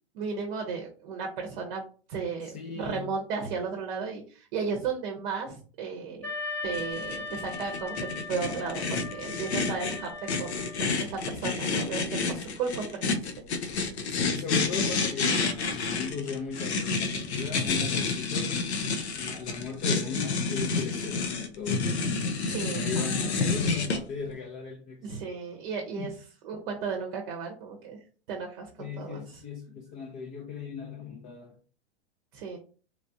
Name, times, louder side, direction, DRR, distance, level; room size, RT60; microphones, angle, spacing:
voice 1, 0.1-1.8 2.1-6.3 6.6-10.1 10.4-13.3 22.5-23.1 25.0-26.1 26.4-28.0 28.3-29.4 32.3-32.6, right 5 dB, 50° right, 0.7 m, -34 dB
voice 2, 2.4-3.1 14.1-18.6 19.2-22.2 22.7-25.2 26.0-26.1 28.8-31.6, left 6 dB, 25° left, 0.5 m, -37 dB
Wind instrument woodwind instrument, 6.2-11.1, left 3 dB, 5° left, 0.9 m, -38 dB
sound 1, 6.7-24.0, left 4 dB, 85° left, 0.7 m, -29 dB
3.3 x 2.4 x 2.6 m
hypercardioid pair, 125°, 32 cm